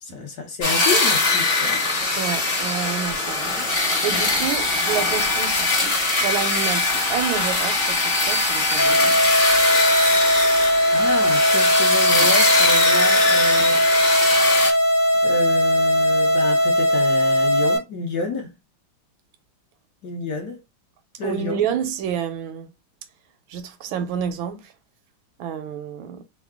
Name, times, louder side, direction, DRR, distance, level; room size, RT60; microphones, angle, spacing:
voice 1, 0.0-1.9 3.5-3.7 10.6-14.2 15.2-18.5 20.0-20.6 21.2-21.6, left 3 dB, 60° left, 1.2 m, -29 dB
sound 1, 0.6-14.7, left 2 dB, 35° left, 1.1 m, -21 dB
voice 2, 2.2-3.6 4.0-9.2 21.2-22.7 23.5-24.7 25.4-26.2, right 8 dB, 80° right, 1.4 m, -29 dB
sound 2, 8.8-17.8, equal, 15° left, 0.6 m, -19 dB
3.7 x 2.2 x 3.4 m
omnidirectional pair, 2.2 m